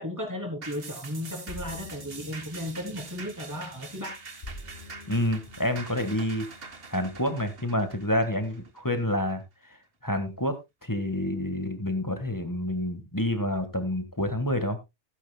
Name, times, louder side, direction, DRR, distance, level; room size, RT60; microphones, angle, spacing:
voice 1, 0.0-4.2, left 1 dB, 15° right, 2 dB, 3.3 m, -35 dB
sound 1, 0.6-9.3 9.7-9.8, right 4 dB, 55° right, 1.6 m, -44 dB
sound 2, 1.5-7.1, left 1 dB, 60° left, 3.0 m, -47 dB
voice 2, 5.1-6.4 6.9-9.8 10.0-10.6 10.8-14.8, left 1 dB, 15° left, 8 dB, 1.6 m, -28 dB
16.5 x 9.8 x 2.2 m, 0.22 s
omnidirectional pair, 1.2 m